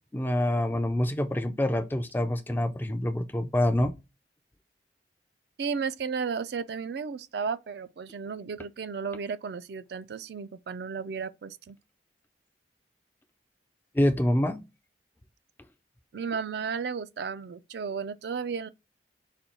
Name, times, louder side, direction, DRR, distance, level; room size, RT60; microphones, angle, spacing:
voice 1, 0.1-3.9 13.9-14.6, left 1 dB, 10° left, 0.3 m, -26 dB
voice 2, 5.6-11.8 16.1-18.7, right 5 dB, 70° right, 0.4 m, -34 dB
4.1 x 2.3 x 4.2 m
head